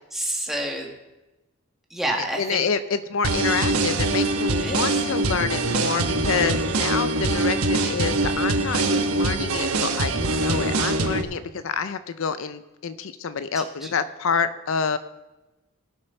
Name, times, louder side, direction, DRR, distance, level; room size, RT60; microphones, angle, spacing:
voice 1, 0.1-0.9 1.9-2.6 4.5-5.0 5.9-6.3 13.8-13.9, right 1 dB, ahead, 0 dB, 1.8 m, -29 dB
voice 2, 2.4-15.0, left 6 dB, 65° left, 12 dB, 0.5 m, -27 dB
sound 1, 3.2-11.2, right 2 dB, 85° right, 1.2 m, -23 dB
19.0 x 6.6 x 5.7 m, 1.1 s
head